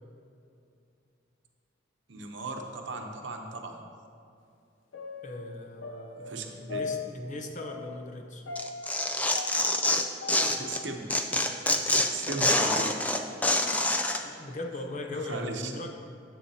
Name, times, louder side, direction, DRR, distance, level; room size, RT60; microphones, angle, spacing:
voice 1, 2.1-3.9 6.2-6.8 10.5-11.8 12.1-12.9 15.1-15.7, right 3 dB, 70° right, 3 dB, 0.8 m, -37 dB
sound 1, 4.9-12.2 12.6-14.0 14.4-14.5, left 4 dB, 75° left, 0.7 m, -41 dB
voice 2, 5.2-8.5 14.2-15.9, left 2 dB, 40° left, 3 dB, 0.7 m, -39 dB
Tearing, 8.5-10.8 11.1-14.2, left 2 dB, 10° left, 0.3 m, -26 dB
9.9 x 7.9 x 2.8 m, 2.5 s
head